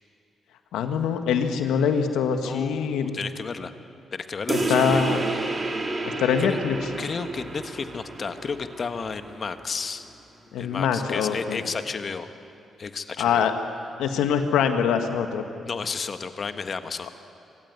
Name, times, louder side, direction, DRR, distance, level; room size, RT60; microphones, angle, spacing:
voice 1, 0.7-3.2 4.7-5.2 6.0-6.8 10.5-11.6 13.2-13.5 14.0-15.4, left 7 dB, 85° left, 7 dB, 1.7 m, -24 dB
voice 2, 2.4-3.7 4.1-5.2 6.4-6.6 7.0-10.1 10.6-12.3 12.8-13.5 15.6-17.1, left 5 dB, 50° left, 9 dB, 1.5 m, -32 dB
sound 1, 4.5-9.5, right 2 dB, 40° right, 4.2 m, -30 dB
25.5 x 16.0 x 9.7 m, 2.7 s
supercardioid pair, 60°, 0 cm